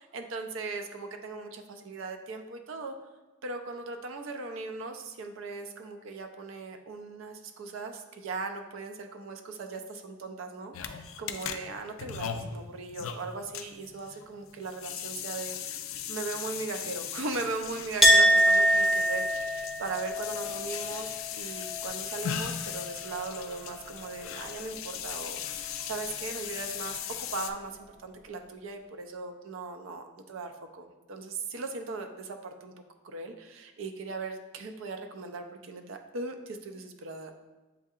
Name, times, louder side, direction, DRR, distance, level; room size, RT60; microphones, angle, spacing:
voice 1, 0.0-2.9 3.4-15.8 16.1-21.1 21.4-32.7 33.0-37.4, right 3 dB, 70° right, 5 dB, 0.4 m, -39 dB
sound 1, 10.7-27.5, left 9 dB, 75° left, 0.3 m, -38 dB
Chink clink, 18.0-23.5 23.8-24.7, equal, ahead, 0.4 m, -26 dB
7.6 x 2.7 x 2.4 m, 1.2 s
head